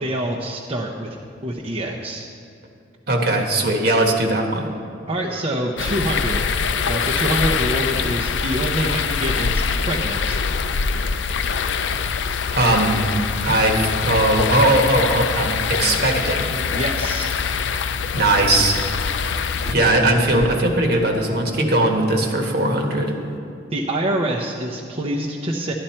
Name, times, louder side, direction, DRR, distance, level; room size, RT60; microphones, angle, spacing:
voice 1, 0.0-2.3 5.1-6.4 6.8-10.4 16.7-17.3 23.7-25.7, right 1 dB, 35° right, -3 dB, 0.8 m, -26 dB
voice 2, 3.1-4.7 12.5-13.0 13.5-16.5 18.1-18.8 19.7-23.1, right 1 dB, 55° right, 2 dB, 1.4 m, -19 dB
sound 1, 5.8-19.7, left 6 dB, 70° left, 0.5 m, -24 dB
sound 2, 19.6-22.0, equal, ahead, 0.7 m, -37 dB
12.0 x 11.5 x 4.4 m, 2.5 s
head